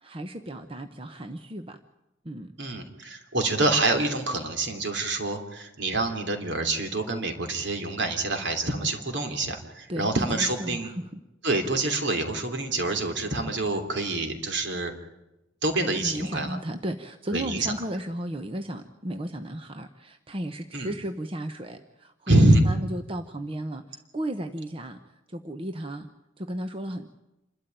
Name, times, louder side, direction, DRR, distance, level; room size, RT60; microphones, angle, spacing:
voice 1, 0.0-1.8 2.2-2.5 9.9-11.2 15.9-25.0 25.3-26.1 26.4-27.1, right 1 dB, 30° right, 7 dB, 0.9 m, -34 dB
voice 2, 2.6-10.9 11.4-14.9 15.6-16.6 17.3-17.7 20.7-20.9 22.3-22.7, right 2 dB, 60° right, 5 dB, 3.1 m, -26 dB
28.0 x 13.0 x 9.2 m, 0.96 s
head